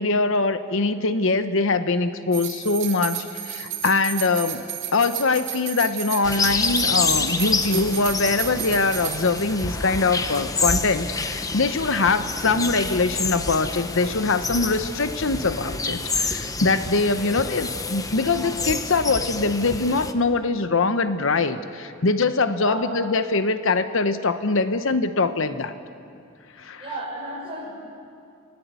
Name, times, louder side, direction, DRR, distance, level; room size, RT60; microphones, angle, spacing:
voice 1, 0.0-4.6 4.9-25.7 26.6-26.8, left 3 dB, 70° left, 11 dB, 0.9 m, -23 dB
sound 1, 2.3-10.0 10.3-10.4, right 12 dB, 65° right, 2.3 m, -33 dB
sound 2, 6.2-20.1, left 3 dB, 15° left, 1.0 m, -28 dB
voice 2, 22.6-22.9 26.8-27.7, right 1 dB, 30° right, -2 dB, 6.7 m, -32 dB
30.0 x 19.0 x 8.3 m, 2.5 s
head